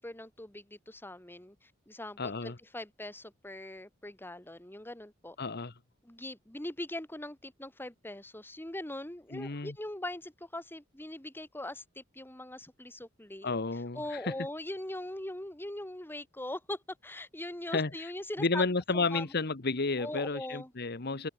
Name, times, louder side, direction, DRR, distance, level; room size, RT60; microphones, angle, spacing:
voice 1, 0.0-5.4 6.0-13.5 13.9-18.6 18.9-19.2 20.0-20.7 21.1-21.3, left 1 dB, 10° left, 1.8 m, -41 dB
voice 2, 2.2-2.6 5.4-5.7 9.3-9.7 13.4-14.3 17.7-17.9 18.4-21.3, left 3 dB, 55° left, 1.3 m, -31 dB
head